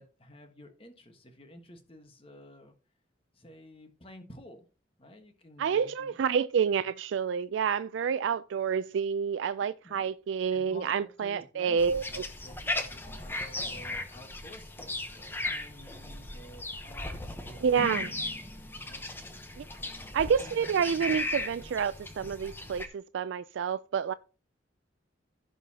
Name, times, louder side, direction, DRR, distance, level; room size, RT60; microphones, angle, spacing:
voice 1, 0.0-2.7 3.3-4.7 5.0-6.2 9.6-10.1 10.5-11.8 12.1-17.6 18.8-19.1 19.6-20.1, left 1 dB, 30° left, 1.4 m, -52 dB
voice 2, 5.6-12.0 17.6-18.1 19.6-19.7 20.1-24.1, right 7 dB, 85° right, 0.3 m, -28 dB
sound 1, 11.8-22.9, left 2 dB, 10° left, 0.9 m, -37 dB
15.5 x 5.4 x 2.9 m
head